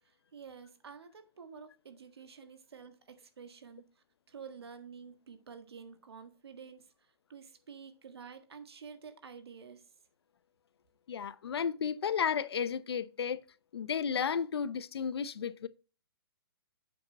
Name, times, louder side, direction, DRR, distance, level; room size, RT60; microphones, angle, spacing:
voice 1, 0.0-9.9, right 6 dB, 85° right, 1.6 m, -50 dB
voice 2, 11.1-13.4 13.7-15.7, left 7 dB, 80° left, 0.7 m, -33 dB
7.7 x 5.5 x 4.1 m
hypercardioid pair, 155°, 13 cm